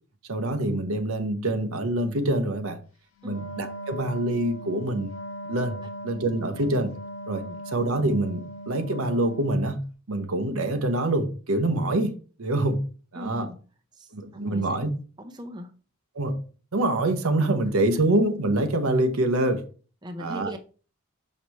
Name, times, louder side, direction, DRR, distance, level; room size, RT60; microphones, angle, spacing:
voice 1, 0.3-2.8 3.2-5.1 5.5-6.9 7.3-9.8 10.1-12.8 13.1-13.5 14.1-14.9 16.1-16.4 16.7-19.7 20.2-20.5, right 1 dB, 85° right, 0.9 m, -25 dB
Wind instrument woodwind instrument, 3.2-9.7, right 1 dB, 90° left, 1.3 m, -39 dB
voice 2, 6.4-6.7 7.4-7.6 13.1-13.6 13.9-14.8 15.2-15.7 20.0-20.6, equal, 20° right, 0.6 m, -40 dB
6.6 x 5.2 x 3.0 m
head